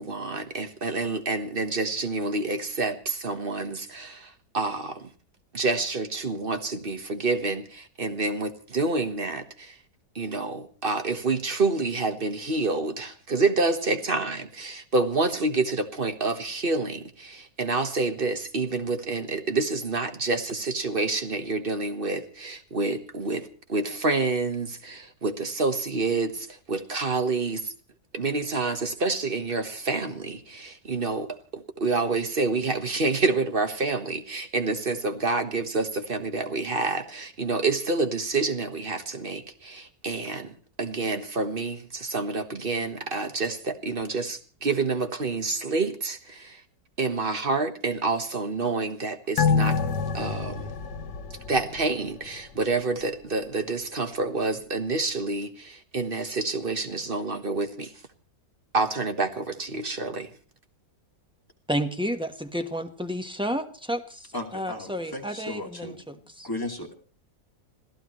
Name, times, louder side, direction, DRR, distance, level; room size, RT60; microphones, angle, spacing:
voice 1, 0.0-5.1 5.5-9.8 10.1-27.7 28.1-46.6 47.0-49.8 50.1-50.7 51.5-57.9 58.7-60.3, right 3 dB, 35° right, 8 dB, 1.5 m, -28 dB
sound 1, 49.4-52.3 52.6-52.7, left 5 dB, 80° left, 1.8 m, -27 dB
voice 2, 61.7-66.5, equal, 5° right, 6 dB, 1.0 m, -31 dB
voice 3, 64.3-66.9, left 1 dB, 10° left, 1 dB, 2.6 m, -36 dB
26.5 x 16.0 x 3.2 m, 0.41 s
omnidirectional pair, 1.8 m